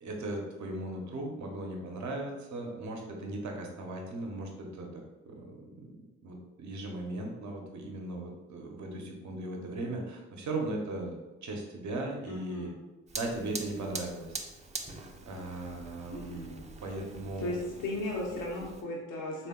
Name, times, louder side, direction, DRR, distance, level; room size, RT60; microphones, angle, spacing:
voice 1, 0.0-5.9 6.2-12.7 13.1-14.3 15.2-17.6, right 2 dB, 60° right, 1 dB, 0.9 m, -38 dB
voice 2, 12.3-12.7 16.1-16.5 17.4-19.5, left 1 dB, 75° left, -3 dB, 0.8 m, -36 dB
Fire, 13.1-18.8, right 3 dB, 20° right, 0.5 m, -44 dB
3.5 x 2.4 x 3.7 m, 1.1 s
hypercardioid pair, 40°, 32 cm